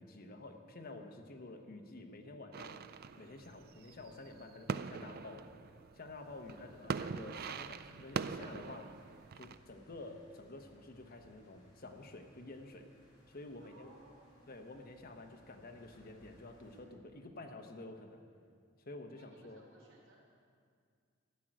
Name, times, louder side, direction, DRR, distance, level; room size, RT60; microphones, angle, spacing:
voice 1, 0.0-2.9 3.2-9.0 9.4-12.9 13.3-13.9 14.5-18.2 18.8-19.6, left 2 dB, 50° left, 4 dB, 1.0 m, -50 dB
sound 1, 2.5-9.6, right 5 dB, 50° right, 0.4 m, -43 dB
sound 2, 6.1-16.8, equal, 20° left, 4.0 m, -66 dB
voice 2, 13.6-14.6 19.2-20.2, right 2 dB, 75° right, -3 dB, 3.6 m, -62 dB
13.0 x 6.2 x 9.1 m, 2.2 s
head